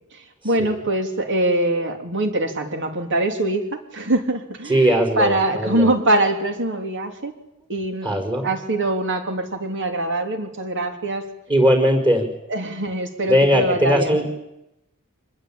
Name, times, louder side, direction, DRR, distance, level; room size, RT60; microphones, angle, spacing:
voice 1, 0.4-7.3 7.7-8.1 8.4-11.3 12.5-14.2, right 1 dB, 55° right, 6 dB, 3.5 m, -23 dB
voice 2, 4.7-5.9 8.0-8.5 11.5-12.3 13.3-14.4, equal, 20° right, 4 dB, 5.3 m, -19 dB
26.0 x 21.0 x 8.9 m, 0.86 s
head